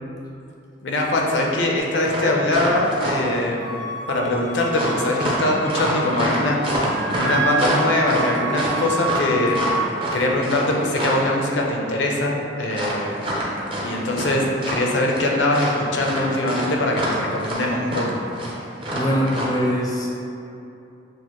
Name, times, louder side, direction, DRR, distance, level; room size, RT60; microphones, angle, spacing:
voice 1, 0.8-9.6 10.1-13.3 13.8-18.2, left 1 dB, 70° left, -1 dB, 0.6 m, -22 dB
sound 1, 1.8-1.9 2.0-3.4 4.7-11.3 12.7-14.3 14.6-15.3 15.5-19.5, right 1 dB, 30° right, 0.6 m, -26 dB
Wind instrument woodwind instrument, 3.6-6.5 6.8-9.9, right 3 dB, 70° right, 0.6 m, -29 dB
voice 2, 18.9-20.1, equal, 20° left, -3 dB, 0.5 m, -22 dB
6.4 x 2.1 x 3.0 m, 2.7 s
head